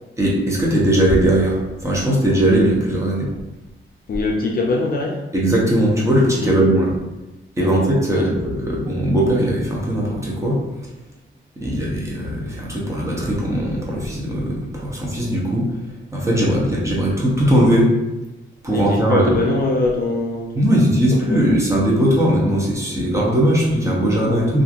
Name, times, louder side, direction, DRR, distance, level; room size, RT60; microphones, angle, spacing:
voice 1, 0.2-3.3 5.3-6.9 7.6-10.6 11.6-15.7 16.1-17.9 18.6-19.4 20.5-24.6, right 1 dB, 15° right, -4 dB, 0.7 m, -19 dB
voice 2, 4.1-5.2 6.4-6.6 7.6-8.3 11.8-11.9 16.4-16.5 18.7-20.8 21.2-21.4, left 3 dB, 45° left, 0 dB, 0.4 m, -23 dB
3.0 x 2.5 x 2.4 m, 1.0 s
wide cardioid pair, 145°, 21 cm